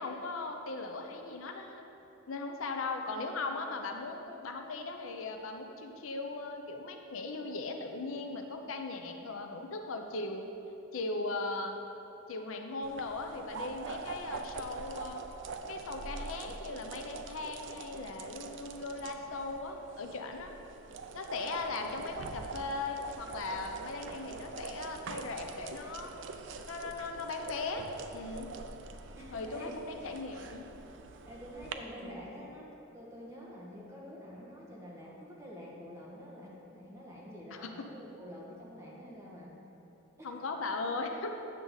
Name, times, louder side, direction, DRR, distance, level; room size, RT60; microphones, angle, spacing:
voice 1, 0.0-1.8 2.3-10.5 10.9-11.8 12.3-15.2 15.6-20.6 21.1-26.1 26.7-28.5 29.3-30.7 37.5-37.7 40.2-41.4, left 3 dB, 75° left, 4 dB, 0.6 m, -38 dB
sound 1, 12.8-31.7, right 4 dB, 60° right, 0.4 m, -44 dB
voice 2, 29.1-29.7 31.2-39.6 40.2-40.4, equal, 15° right, -6 dB, 1.5 m, -47 dB
8.8 x 6.6 x 3.9 m, 2.9 s
head